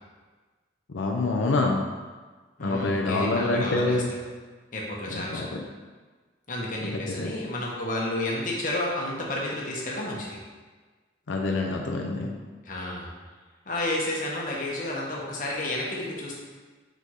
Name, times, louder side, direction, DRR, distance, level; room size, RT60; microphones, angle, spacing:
voice 1, 0.9-1.9 2.6-4.1 5.1-5.6 6.8-7.3 11.3-12.3, left 2 dB, 90° left, 1 dB, 0.6 m, -26 dB
voice 2, 2.6-4.0 4.7-5.5 6.5-10.4 12.6-13.1 13.7-16.4, left 1 dB, 45° left, -3 dB, 1.2 m, -31 dB
5.1 x 4.5 x 4.8 m, 1.4 s
head